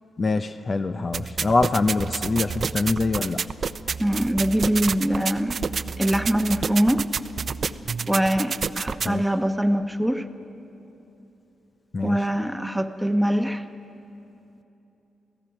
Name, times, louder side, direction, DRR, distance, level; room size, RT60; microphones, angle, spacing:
voice 1, 0.2-3.4 9.0-9.2 11.9-12.2, left 3 dB, 40° left, 10 dB, 0.6 m, -24 dB
sound 1, 1.1-9.1, right 5 dB, 55° right, 0.5 m, -29 dB
voice 2, 4.0-5.6 6.0-7.1 8.1-10.2 12.0-13.6, equal, 5° right, 7 dB, 1.1 m, -23 dB
28.0 x 17.0 x 5.9 m, 2.9 s
cardioid pair, 65°, 0 cm